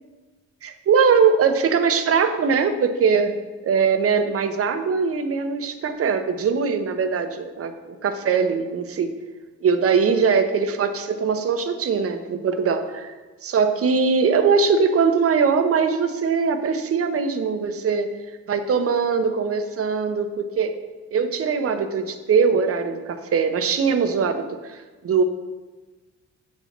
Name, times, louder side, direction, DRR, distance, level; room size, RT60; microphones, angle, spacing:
voice 1, 0.6-3.4 3.6-9.1 9.6-13.1 13.4-18.1 18.5-20.8 21.1-25.2, right 5 dB, 50° right, 8 dB, 0.8 m, -21 dB
7.9 x 4.2 x 5.9 m, 1.3 s
cardioid pair, 90°, 30 cm